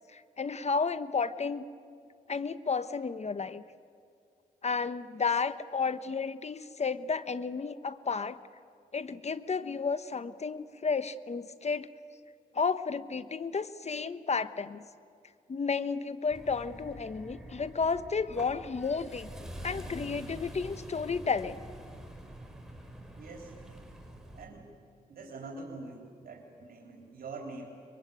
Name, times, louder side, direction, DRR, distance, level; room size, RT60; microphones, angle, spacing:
voice 1, 0.1-1.6 2.3-3.6 4.6-8.4 8.9-11.9 12.5-14.8 15.5-19.3 19.6-21.6, left 5 dB, 45° left, 13 dB, 1.1 m, -32 dB
sound 1, 16.3-24.5, equal, 5° right, 4.7 m, -46 dB
voice 2, 23.1-23.5 24.3-24.7 25.1-27.6, right 3 dB, 75° right, 0 dB, 3.6 m, -44 dB
23.5 x 23.0 x 9.1 m, 2.3 s
cardioid pair, 65°, 15 cm